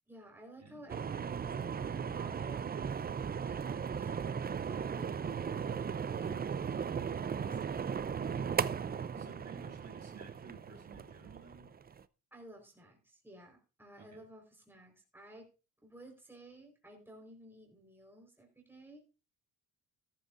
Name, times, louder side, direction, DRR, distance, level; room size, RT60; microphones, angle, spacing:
voice 1, 0.1-7.6 9.1-9.5 12.3-15.5 15.8-19.0, right 1 dB, 5° right, 1 dB, 4.4 m, -55 dB
sound 1, 0.9-12.0, right 7 dB, 25° right, 0.5 m, -37 dB
voice 2, 9.2-11.7 14.0-14.2, right 5 dB, 40° right, 1 dB, 4.5 m, -54 dB
13.5 x 13.0 x 2.6 m, 0.31 s
cardioid pair, 90°, 40 cm